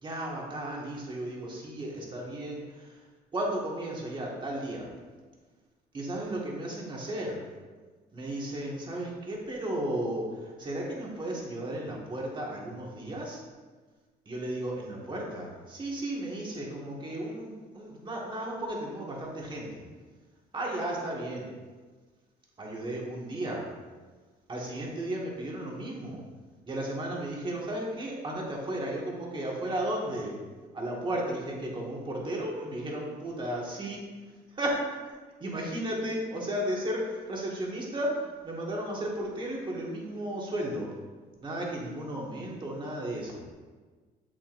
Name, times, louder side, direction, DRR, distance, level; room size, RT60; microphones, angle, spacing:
voice 1, 0.0-3.0 3.3-4.9 5.9-7.4 8.1-13.4 14.3-19.8 20.5-21.5 22.6-23.7 24.5-26.2 26.6-30.3 30.7-34.0 34.5-35.0 35.4-40.9 41.4-43.4, right 1 dB, 30° right, -2 dB, 1.9 m, -34 dB
7.7 x 7.5 x 2.7 m, 1.4 s
cardioid pair, 110°, 17 cm